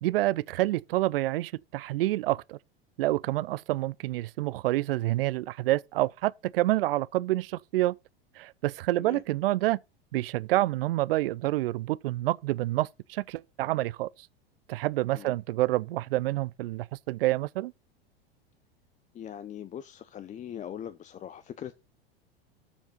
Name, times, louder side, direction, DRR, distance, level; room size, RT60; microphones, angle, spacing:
voice 1, 0.0-2.6 3.0-7.9 8.4-9.8 10.1-14.1 14.7-17.7, right 17 dB, 65° right, 0.5 m, -28 dB
voice 2, 19.1-21.7, left 10 dB, 25° left, 0.7 m, -41 dB
7.3 x 6.8 x 5.4 m
hypercardioid pair, 90°, 31 cm